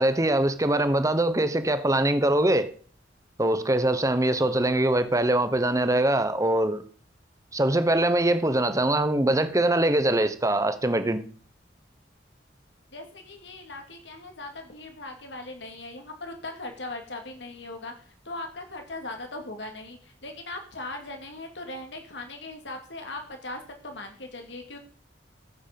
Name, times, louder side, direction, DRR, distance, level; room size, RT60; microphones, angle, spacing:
voice 1, 0.0-2.7 3.4-6.8 7.5-11.2, right 1 dB, 20° right, 1.0 m, -23 dB
voice 2, 12.9-24.8, left 2 dB, 80° left, 2.8 m, -39 dB
14.5 x 8.1 x 5.3 m
head